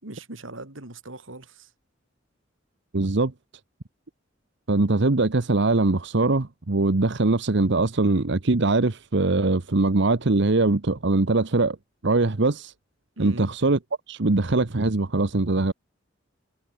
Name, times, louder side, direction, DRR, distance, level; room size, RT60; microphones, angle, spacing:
voice 1, 0.0-1.7 13.2-13.5, right 2 dB, 90° right, 4.0 m, -39 dB
voice 2, 2.9-3.3 4.7-11.8 12.0-12.7 13.2-13.8 14.1-15.7, right 2 dB, 65° right, 1.0 m, -22 dB
head